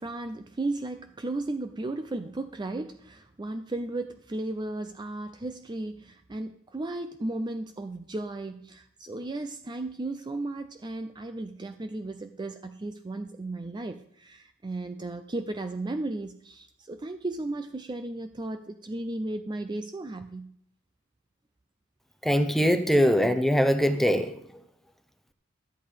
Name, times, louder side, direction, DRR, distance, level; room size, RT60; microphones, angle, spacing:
voice 1, 0.0-20.5, right 2 dB, 20° right, 8 dB, 0.5 m, -35 dB
voice 2, 22.2-24.3, equal, ahead, 8 dB, 0.8 m, -22 dB
12.0 x 8.5 x 5.1 m, 0.68 s
head